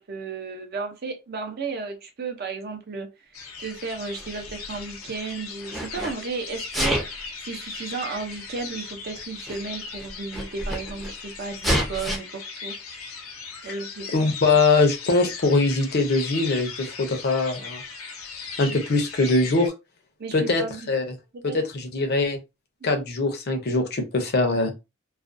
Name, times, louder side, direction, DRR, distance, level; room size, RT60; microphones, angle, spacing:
voice 1, 0.0-3.3 3.6-12.7 13.6-14.3 18.6-18.8 20.2-20.9 21.3-21.6 22.9-23.0, right 4 dB, 50° right, 0.5 m, -34 dB
sound 1, 3.3-19.7, left 5 dB, 85° left, 0.7 m, -38 dB
Sneeze, 4.1-5.2 5.6-6.1 6.6-7.2 8.2-8.3 9.2-9.3 9.5-9.6 9.9-11.1 11.6-12.2, equal, ahead, 0.5 m, -27 dB
voice 2, 14.1-17.8 18.6-19.7 20.3-20.6 20.9-21.0 21.4-22.4 22.8-24.7, left 3 dB, 50° left, 0.6 m, -22 dB
2.4 x 2.2 x 2.5 m
head